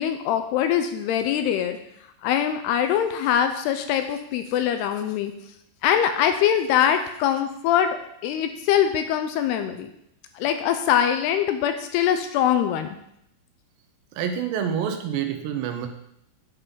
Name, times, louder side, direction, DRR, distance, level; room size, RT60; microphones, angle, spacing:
voice 1, 0.0-1.8 2.2-5.3 5.8-8.0 8.2-9.9 10.4-12.9, left 9 dB, 80° left, 8 dB, 2.5 m, -23 dB
voice 2, 14.1-15.9, right 8 dB, 85° right, 6 dB, 3.2 m, -27 dB
9.6 x 5.3 x 5.5 m, 0.76 s
omnidirectional pair, 5.0 m